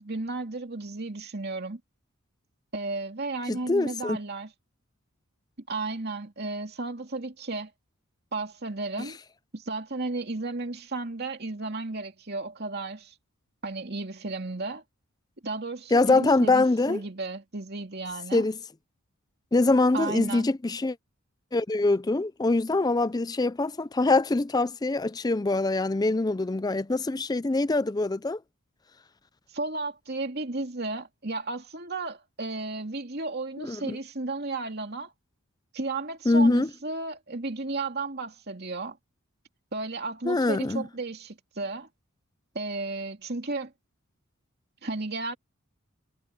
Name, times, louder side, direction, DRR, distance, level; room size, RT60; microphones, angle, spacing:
voice 1, 0.0-1.8 2.7-4.5 5.7-7.7 8.3-9.2 9.5-13.1 13.6-14.8 15.4-18.5 19.9-20.4 29.5-35.1 35.7-39.0 39.7-41.9 42.5-43.7 44.8-45.4, right 3 dB, 45° right, 2.7 m, -33 dB
voice 2, 3.5-4.2 9.0-9.1 15.9-17.0 18.3-18.6 19.5-21.0 21.5-28.4 33.6-34.0 36.3-36.7 40.3-40.8, left 2 dB, 15° left, 0.4 m, -24 dB
head